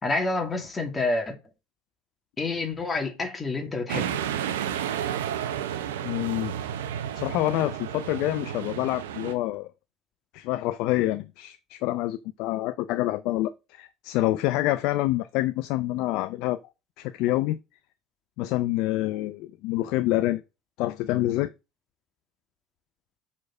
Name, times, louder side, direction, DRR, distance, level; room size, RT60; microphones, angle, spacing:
voice 1, 0.0-1.3 2.4-4.2, left 3 dB, 25° left, 2.5 m, -28 dB
sound 1, 3.9-9.3, right 9 dB, 80° right, 0.8 m, -31 dB
voice 2, 6.0-6.5 7.1-9.7 10.3-16.6 17.0-17.6 18.4-20.4 20.8-21.5, left 16 dB, 65° left, 0.4 m, -27 dB
6.4 x 4.4 x 5.9 m
hypercardioid pair, 70°, 0 cm